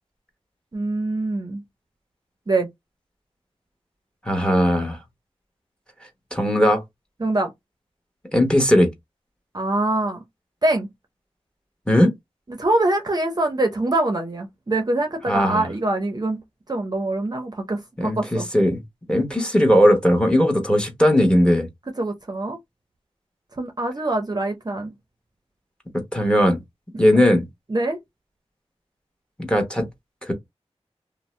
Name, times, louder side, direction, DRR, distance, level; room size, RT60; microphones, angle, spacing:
voice 1, 0.7-1.6 2.5-2.7 7.2-7.5 9.5-10.2 10.6-10.9 12.5-16.4 16.7-18.5 22.0-22.6 23.6-25.0 26.9-27.2 27.7-28.0, right 2 dB, 35° right, 0.6 m, -24 dB
voice 2, 4.3-5.0 6.3-6.8 8.3-8.9 11.9-12.1 15.3-15.6 18.0-18.8 19.1-21.7 26.1-26.6 27.0-27.4 29.4-29.9 30.3-30.4, equal, 10° left, 1.0 m, -18 dB
2.6 x 2.0 x 3.1 m
wide cardioid pair, 65°, 11 cm